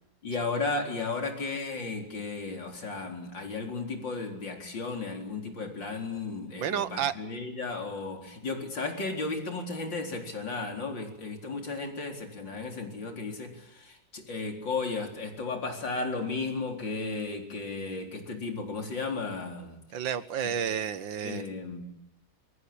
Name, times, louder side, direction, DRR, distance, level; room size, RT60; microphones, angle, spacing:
voice 1, 0.2-19.8 20.4-20.5 21.2-21.8, left 3 dB, 80° left, 4 dB, 4.8 m, -34 dB
voice 2, 6.6-7.1 19.9-21.4, right 8 dB, 85° right, 14 dB, 1.9 m, -30 dB
26.5 x 23.5 x 8.7 m, 0.85 s
omnidirectional pair, 2.0 m